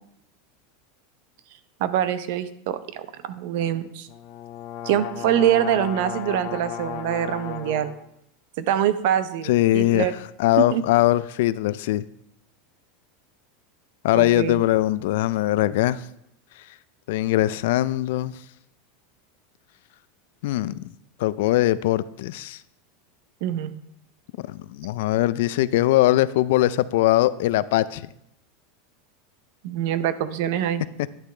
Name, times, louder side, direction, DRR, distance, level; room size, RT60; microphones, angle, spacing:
voice 1, 1.8-4.1 4.8-7.9 8.6-10.1 10.6-10.8 14.1-14.6 23.4-23.7 29.6-30.8, right 10 dB, 60° right, 13 dB, 0.6 m, -24 dB
sound 1, 4.1-8.0, left 9 dB, 50° left, 0.9 m, -34 dB
voice 2, 9.4-10.1 10.4-12.0 14.0-16.0 17.1-18.3 20.4-20.9 21.2-22.6 24.5-28.0, left 15 dB, 70° left, 17 dB, 0.3 m, -21 dB
10.5 x 8.2 x 3.3 m, 0.76 s
supercardioid pair, 160°, 0 cm